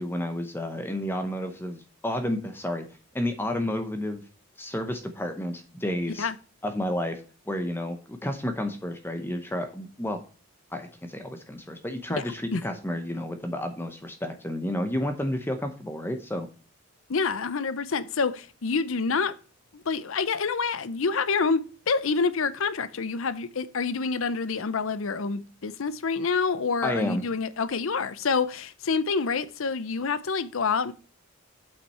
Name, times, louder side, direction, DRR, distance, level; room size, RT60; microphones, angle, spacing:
voice 1, 0.0-2.8 3.1-4.2 4.6-6.3 6.6-10.2 10.7-16.5 26.8-27.2, left 1 dB, 10° left, 0.9 m, -31 dB
voice 2, 12.2-12.6 17.1-19.4 19.7-30.9, left 5 dB, 65° left, 0.6 m, -27 dB
8.1 x 5.8 x 4.3 m
head